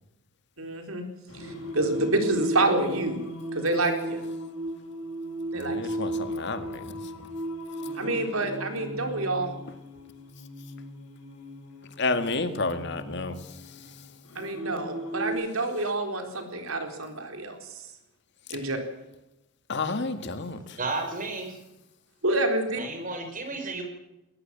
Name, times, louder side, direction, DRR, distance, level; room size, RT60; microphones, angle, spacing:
voice 1, 0.6-1.0 1.4-3.2 3.5-4.2 5.5-5.8 8.0-9.5 14.4-17.6 18.5-18.8 22.2-22.8, right 2 dB, 80° right, 5 dB, 4.2 m, -27 dB
Singing, 1.3-15.3, right 1 dB, 75° left, 7.3 m, -36 dB
voice 2, 5.5-7.0 12.0-13.4 18.5-18.6 19.7-20.8, left 3 dB, 55° left, 9 dB, 2.0 m, -30 dB
voice 3, 20.8-21.6 22.7-23.8, right 3 dB, 40° right, 5 dB, 5.3 m, -33 dB
21.0 x 20.0 x 7.6 m, 0.93 s
head